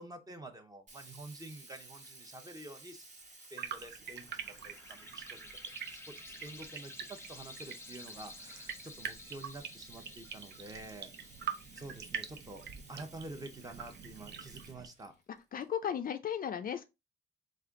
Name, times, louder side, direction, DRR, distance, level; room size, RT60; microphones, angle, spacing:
voice 1, 0.0-3.0 3.5-5.6 5.9-11.1 11.7-15.1, right 2 dB, 20° right, 0.9 m, -48 dB
Sink (filling or washing), 0.9-15.6, right 2 dB, 40° right, 1.3 m, -56 dB
sound 1, 3.6-14.9, right 7 dB, 60° right, 0.6 m, -45 dB
sound 2, 4.0-13.2, left 2 dB, 10° left, 0.7 m, -53 dB
voice 2, 15.5-16.8, left 8 dB, 45° left, 0.4 m, -35 dB
3.4 x 2.6 x 3.6 m
cardioid pair, 90°, 20 cm